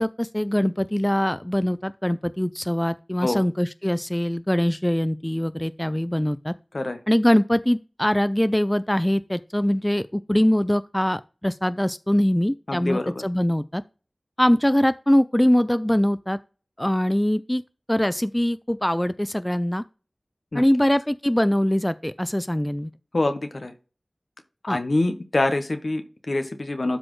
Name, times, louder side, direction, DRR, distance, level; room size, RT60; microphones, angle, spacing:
voice 1, 0.0-6.5 7.1-13.8 14.4-16.4 16.8-17.6 17.9-19.8 20.5-22.9 24.7-24.8, equal, 15° left, 0.3 m, -22 dB
voice 2, 12.7-13.2 20.5-20.6 23.1-23.7 24.6-27.0, left 2 dB, 70° left, 1.0 m, -25 dB
12.5 x 4.1 x 3.1 m
wide cardioid pair, 45°, 0 cm